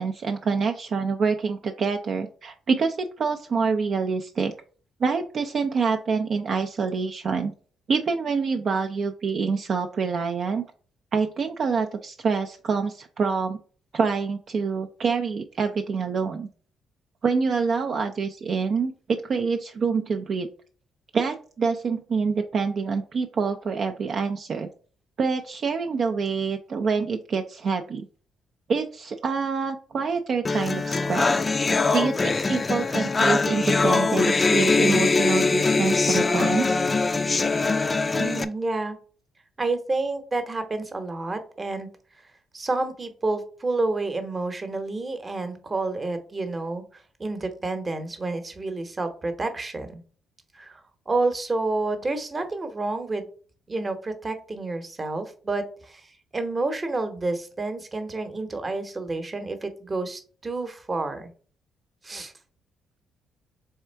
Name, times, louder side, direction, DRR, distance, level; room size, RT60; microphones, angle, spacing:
voice 1, 0.0-4.5 5.0-7.5 7.9-10.6 11.1-13.6 13.9-16.5 17.2-20.5 21.1-24.7 25.2-28.1 28.7-31.3 31.9-36.8, right 5 dB, 50° right, 5 dB, 0.4 m, -26 dB
sound 1, 30.4-38.4, left 3 dB, 30° left, 0.4 m, -22 dB
voice 2, 38.1-39.0 39.6-41.9 42.5-46.8 47.2-50.0 50.5-53.3 53.7-61.3 62.0-62.3, right 2 dB, 25° right, 8 dB, 0.9 m, -29 dB
3.5 x 3.3 x 4.4 m, 0.42 s
cardioid pair, 90°, 0 cm